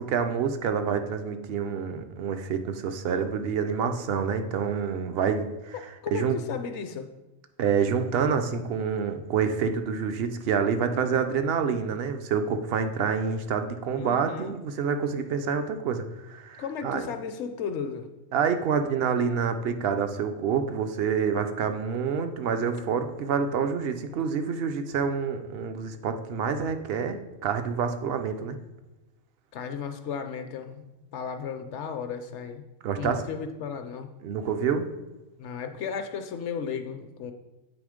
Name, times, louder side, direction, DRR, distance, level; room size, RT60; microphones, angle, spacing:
voice 1, 0.0-5.7 6.1-6.4 7.6-17.1 18.3-28.6 32.8-33.2 34.2-34.9, right 6 dB, 60° right, 8 dB, 0.7 m, -27 dB
voice 2, 6.0-7.1 14.0-14.5 16.6-18.1 29.5-32.6 33.0-34.1 35.4-37.3, left 6 dB, 70° left, 8 dB, 0.9 m, -34 dB
8.0 x 3.7 x 4.9 m, 1.0 s
omnidirectional pair, 1.3 m